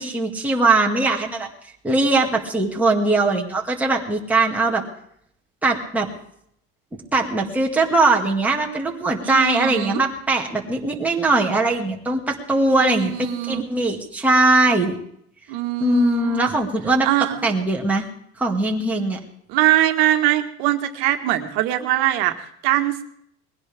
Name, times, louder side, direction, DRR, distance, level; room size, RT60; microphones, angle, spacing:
voice 1, 0.0-1.5 1.8-4.8 5.6-6.1 7.1-15.0 15.8-17.1 17.4-18.0 18.4-19.2, right 2 dB, 5° right, -1 dB, 2.0 m, -20 dB
voice 2, 9.2-10.0 12.8-13.6 15.5-16.5 17.0-17.5 19.5-23.0, right 14 dB, 70° right, 6 dB, 1.7 m, -22 dB
21.0 x 16.5 x 3.5 m, 0.70 s
cardioid pair, 170°, 32 cm